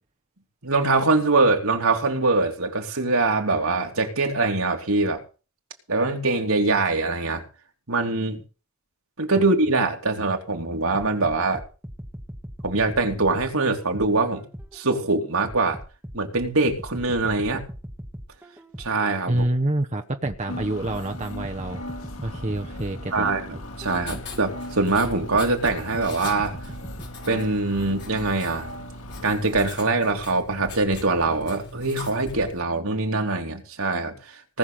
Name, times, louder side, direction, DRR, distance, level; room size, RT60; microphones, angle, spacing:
voice 1, 0.6-5.2 5.9-7.4 7.9-8.4 9.2-11.6 12.6-14.4 14.7-15.8 16.1-17.6 18.8-19.4 23.1-26.6 27.3-28.7 29.2-34.6, right 3 dB, 70° right, 3.3 m, -23 dB
sound 1, 10.9-14.9 15.4-19.7 20.2-24.5 25.0-27.1, equal, 10° right, 1.8 m, -40 dB
voice 2, 19.3-21.8 22.2-23.3, right 1 dB, 30° right, 1.0 m, -27 dB
sound 2, 20.5-29.7, left 1 dB, 80° left, 3.2 m, -39 dB
Writing, 23.6-32.6, left 2 dB, 50° left, 5.8 m, -41 dB
19.0 x 6.8 x 7.7 m
head